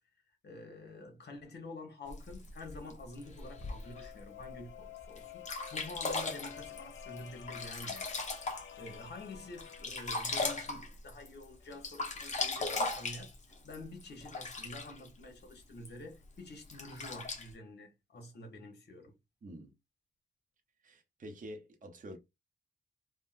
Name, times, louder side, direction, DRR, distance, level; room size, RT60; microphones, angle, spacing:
voice 1, 0.4-5.4 5.7-8.1 8.7-13.4 13.6-19.1, left 2 dB, 60° left, 1.2 m, -48 dB
Sink (filling or washing), 2.1-4.1 4.7-4.8 5.2-5.3 5.4-9.0 9.3-11.4 11.7-15.1 15.8-15.9 16.6-17.5, left 3 dB, 35° left, 0.9 m, -38 dB
sound 1, 3.0-10.7, left 12 dB, 75° left, 0.4 m, -51 dB
voice 2, 19.4-19.7 20.8-22.2, equal, 40° right, 0.7 m, -47 dB
3.6 x 2.1 x 2.5 m
wide cardioid pair, 130°, 20 cm